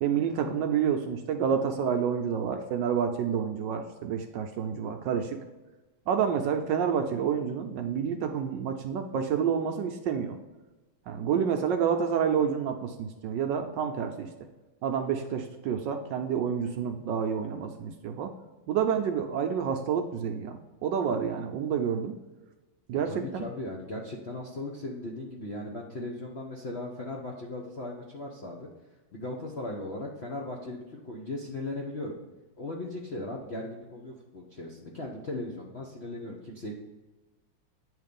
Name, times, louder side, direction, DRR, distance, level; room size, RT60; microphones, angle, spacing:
voice 1, 0.0-5.4 6.1-10.4 11.1-14.3 14.8-18.3 18.7-22.1 22.9-23.4, right 7 dB, 75° right, 5 dB, 1.1 m, -29 dB
voice 2, 23.0-28.7 29.1-32.2 32.6-36.7, left 2 dB, 60° left, -1 dB, 0.6 m, -37 dB
9.2 x 3.2 x 5.1 m, 1.1 s
omnidirectional pair, 2.3 m